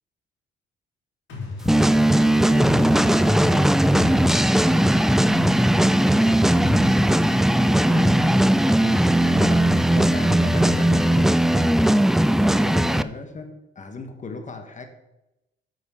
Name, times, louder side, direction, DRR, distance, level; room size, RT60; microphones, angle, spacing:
sound 1, 1.3-12.0, left 3 dB, 75° left, 3.5 m, -36 dB
sound 2, 1.7-13.0, right 1 dB, ahead, 0.3 m, -18 dB
voice 1, 2.2-5.0 6.2-8.2 8.6-11.7 12.4-14.9, left 3 dB, 40° left, 7 dB, 1.4 m, -38 dB
6.9 x 6.3 x 7.0 m, 0.94 s
cardioid pair, 90°, 20 cm